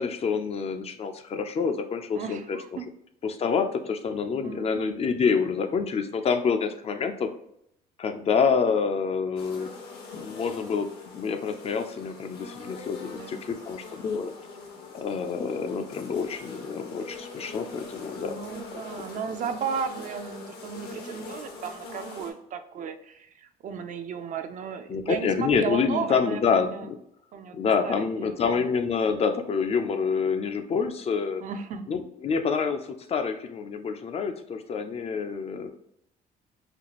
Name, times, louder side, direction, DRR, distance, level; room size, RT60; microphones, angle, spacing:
voice 1, 0.0-2.6 3.2-7.3 8.0-9.7 10.1-14.3 14.9-18.4 18.7-18.8 24.9-27.0 27.5-31.4 31.9-32.8 33.1-35.7, left 5 dB, 35° left, 7 dB, 0.4 m, -27 dB
voice 2, 2.1-2.8 4.4-5.0 13.0-13.4 18.2-26.9 27.3-27.6 27.8-28.6 31.4-31.9, right 6 dB, 50° right, 8 dB, 0.4 m, -35 dB
sound 1, 9.4-22.3, left 3 dB, 70° left, 0.9 m, -43 dB
4.2 x 2.4 x 2.9 m, 0.74 s
cardioid pair, 110°, 17 cm